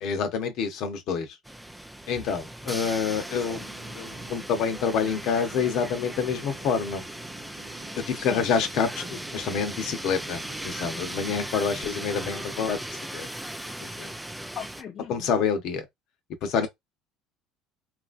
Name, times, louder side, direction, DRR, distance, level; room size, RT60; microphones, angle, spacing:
voice 1, 0.0-1.4 2.1-3.6 4.0-7.1 8.1-12.8 13.1-13.3 13.8-14.1 15.1-15.8 16.4-16.7, left 6 dB, 65° left, 0.9 m, -27 dB
sound 1, 1.5-14.8, right 1 dB, 5° right, 0.4 m, -38 dB
sound 2, 3.2-12.4, right 5 dB, 75° right, 1.1 m, -50 dB
voice 2, 8.1-8.4 14.5-15.3, left 8 dB, 45° left, 0.6 m, -39 dB
3.0 x 2.5 x 2.5 m
supercardioid pair, 90°, 0 cm